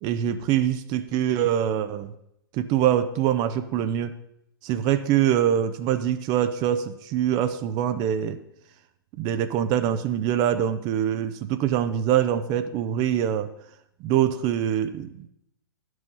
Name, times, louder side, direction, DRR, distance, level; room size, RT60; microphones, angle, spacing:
voice 1, 0.0-2.1 2.5-4.1 4.6-8.4 9.2-13.5 14.0-15.3, right 10 dB, 35° right, 11 dB, 0.5 m, -24 dB
10.5 x 6.2 x 5.4 m, 0.80 s
hypercardioid pair, 125°, 12 cm